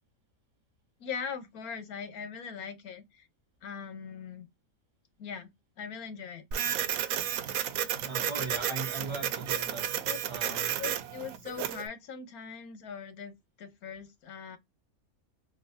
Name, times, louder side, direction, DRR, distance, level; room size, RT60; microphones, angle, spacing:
voice 1, 1.0-3.3 3.6-4.5 5.2-5.5 5.8-6.4 10.1-10.2 10.8-14.6, left 6 dB, 85° left, 1.3 m, -40 dB
Printer, 6.5-11.9, right 10 dB, 75° right, 1.0 m, -32 dB
voice 2, 8.0-9.9 10.3-10.7, right 3 dB, 30° right, 0.6 m, -39 dB
3.9 x 2.4 x 2.6 m
omnidirectional pair, 1.5 m